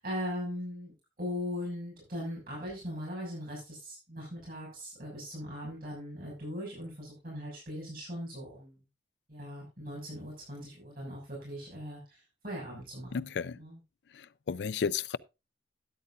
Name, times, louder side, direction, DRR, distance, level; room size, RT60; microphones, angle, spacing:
voice 1, 0.0-8.8 9.3-13.3 13.6-13.8, equal, 55° right, 6.4 m, -39 dB
voice 2, 13.1-13.6 14.1-15.2, left 6 dB, 75° left, 0.4 m, -33 dB
12.5 x 9.8 x 2.6 m
head